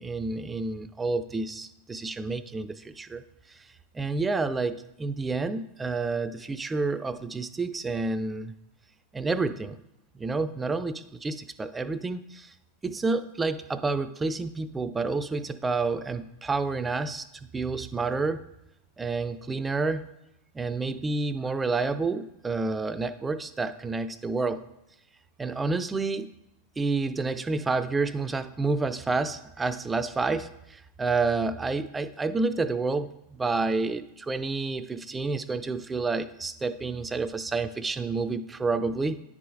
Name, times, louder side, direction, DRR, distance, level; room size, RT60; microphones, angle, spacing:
voice 1, 0.0-3.2 3.5-3.7 3.9-8.5 9.1-9.8 10.1-12.5 12.8-17.3 17.5-18.5 19.0-20.1 20.5-24.6 25.4-26.3 26.8-39.2, right 3 dB, 15° right, 12 dB, 0.3 m, -29 dB
9.6 x 4.7 x 2.5 m, 0.85 s
figure-of-eight pair, 90°, 0 cm